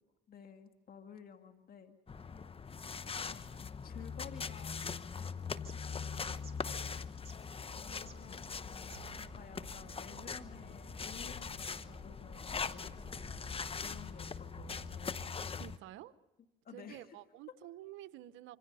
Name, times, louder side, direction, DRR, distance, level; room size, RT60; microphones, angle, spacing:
voice 1, 0.3-2.4 3.0-4.8 7.8-8.4 9.2-13.2 13.8-15.3 16.6-17.2, left 7 dB, 50° left, 6 dB, 2.1 m, -54 dB
sound 1, 2.1-15.8, left 5 dB, 30° left, 1.0 m, -42 dB
sound 2, 2.3-9.4, right 5 dB, 35° right, 2.9 m, -62 dB
sound 3, 7.9-15.3, right 10 dB, 60° right, 2.8 m, -57 dB
voice 2, 15.4-16.1 16.7-18.6, right 14 dB, 80° right, 14 dB, 0.9 m, -50 dB
26.5 x 25.0 x 5.6 m, 1.0 s
supercardioid pair, 80°, 19 cm